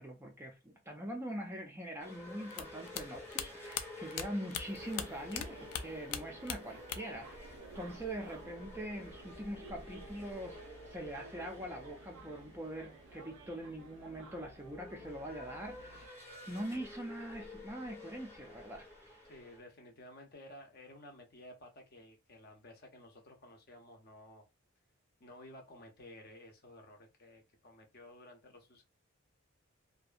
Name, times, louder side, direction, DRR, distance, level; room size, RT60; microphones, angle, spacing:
voice 1, 0.0-10.6 10.9-19.2, right 1 dB, 10° right, 0.4 m, -43 dB
sound 1, 2.0-19.6, left 2 dB, 10° left, 0.8 m, -52 dB
sound 2, 2.5-5.5 5.7-7.2 7.5-8.3, left 9 dB, 90° left, 0.4 m, -40 dB
sound 3, 4.6-16.1, right 3 dB, 80° right, 0.6 m, -54 dB
voice 2, 19.2-24.4 25.2-28.8, left 1 dB, 45° left, 0.6 m, -54 dB
2.6 x 2.2 x 2.4 m
head